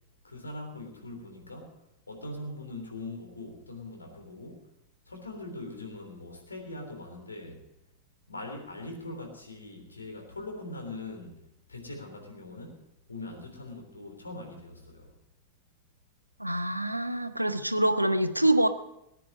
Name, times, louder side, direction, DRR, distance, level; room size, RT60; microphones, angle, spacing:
voice 1, 0.2-1.8 2.1-4.7 5.0-7.7 8.3-12.8 13.1-15.1, left 2 dB, 80° left, 2 dB, 3.4 m, -42 dB
voice 2, 16.4-18.7, right 1 dB, 90° right, 10 dB, 0.9 m, -25 dB
19.0 x 9.8 x 5.4 m, 0.84 s
figure-of-eight pair, 90°, 0 cm